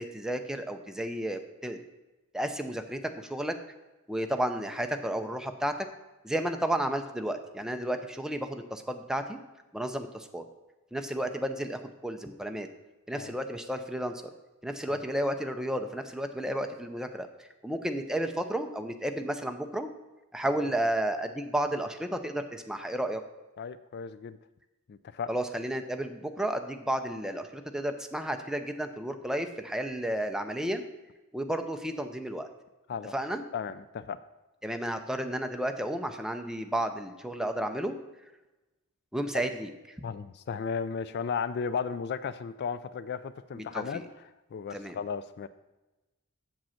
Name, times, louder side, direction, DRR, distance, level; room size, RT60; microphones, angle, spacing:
voice 1, 0.0-1.8 2.3-3.6 4.1-5.7 6.2-9.4 9.7-10.4 10.9-12.7 13.1-14.3 14.6-17.3 17.6-19.9 20.3-23.2 25.3-30.8 31.3-32.5 33.1-33.4 34.6-38.0 39.1-39.7 43.5-44.1 44.7-45.0, right 1 dB, 5° right, 6 dB, 0.6 m, -32 dB
voice 2, 23.6-24.4 24.9-25.3 32.9-33.1 33.5-34.2 40.0-44.0 44.5-45.5, left 6 dB, 50° left, 14 dB, 0.3 m, -35 dB
7.7 x 7.4 x 5.7 m, 1.1 s
head